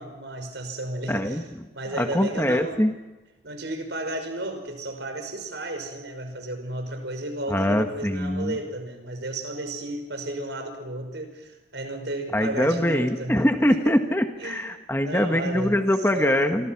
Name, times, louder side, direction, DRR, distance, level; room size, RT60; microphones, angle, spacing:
voice 1, 0.0-1.4 1.7-2.8 3.4-13.9 14.4-14.6 15.0-15.8 16.1-16.7, right 1 dB, 80° right, 6 dB, 5.8 m, -33 dB
voice 2, 1.1-1.4 2.0-2.9 7.5-8.6 12.3-16.7, equal, 10° left, 5 dB, 1.6 m, -23 dB
28.5 x 24.5 x 6.0 m, 1.1 s
head